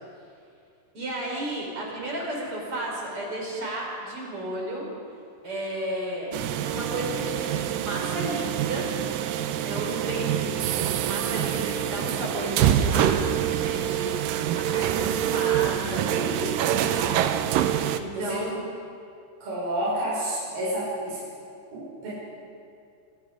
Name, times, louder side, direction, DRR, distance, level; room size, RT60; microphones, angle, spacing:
voice 1, 0.9-4.9 5.4-8.9 9.6-17.2 17.6-18.6, right 1 dB, 30° right, -2 dB, 5.4 m, -33 dB
sound 1, 6.3-18.0, right 10 dB, 85° right, 1.9 m, -26 dB
voice 2, 19.4-21.2 21.7-22.1, right 1 dB, 50° right, -8 dB, 7.3 m, -29 dB
25.5 x 21.5 x 5.0 m, 2.4 s
omnidirectional pair, 5.1 m